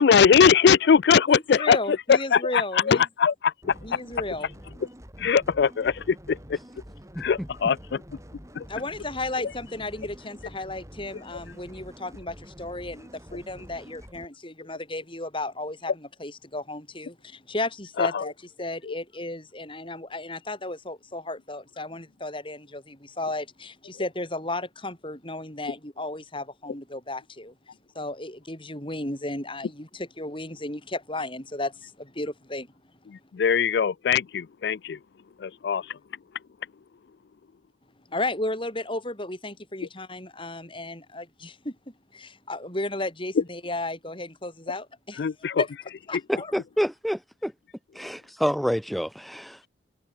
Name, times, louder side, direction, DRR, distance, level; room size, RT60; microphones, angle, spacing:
voice 1, 0.0-1.8 2.3-3.5 5.2-6.6 7.2-8.0 8.6-8.7 18.0-18.2 18.9-19.0 33.3-35.0 35.4-35.9 45.2-45.6, left 6 dB, 65° left, 0.4 m, -21 dB
voice 2, 1.3-3.1 3.8-4.5 8.7-27.5 27.9-32.7 38.1-45.2 45.6-45.7 46.1-46.5, left 2 dB, 30° left, 7.9 m, -34 dB
sound 1, 3.6-14.3, equal, 15° right, 4.6 m, -46 dB
voice 3, 46.5-47.5 47.9-49.7, equal, ahead, 1.2 m, -28 dB
head